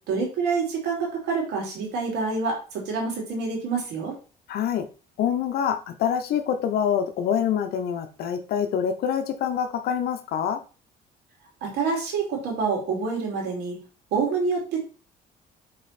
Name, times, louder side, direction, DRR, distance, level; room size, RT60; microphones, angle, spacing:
voice 1, 0.1-4.1 11.6-13.8 14.1-14.8, right 4 dB, 80° right, -1 dB, 2.7 m, -27 dB
voice 2, 4.5-4.9 5.2-10.6, left 8 dB, 70° left, 8 dB, 0.8 m, -26 dB
5.4 x 4.1 x 4.2 m, 0.35 s
cardioid pair, 110°, 17 cm